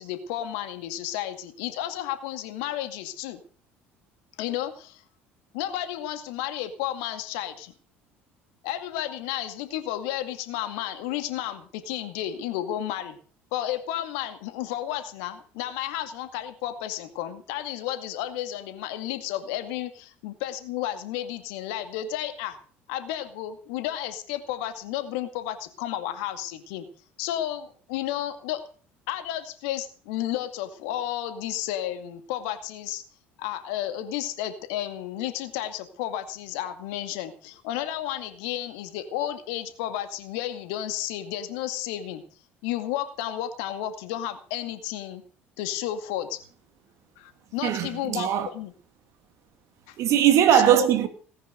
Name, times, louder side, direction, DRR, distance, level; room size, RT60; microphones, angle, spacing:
voice 1, 0.0-3.4 4.4-5.0 5.5-7.7 8.6-13.2 13.5-22.6 22.9-26.9 27.2-28.6 29.1-33.0 33.4-42.2 42.6-45.2 45.6-46.4 47.2-48.7 49.9-50.0 50.5-50.9, left 12 dB, 65° left, 2.2 m, -32 dB
voice 2, 47.6-48.5 50.0-51.1, right 10 dB, 55° right, 2.7 m, -20 dB
18.5 x 10.0 x 6.6 m
figure-of-eight pair, 60°, 7 cm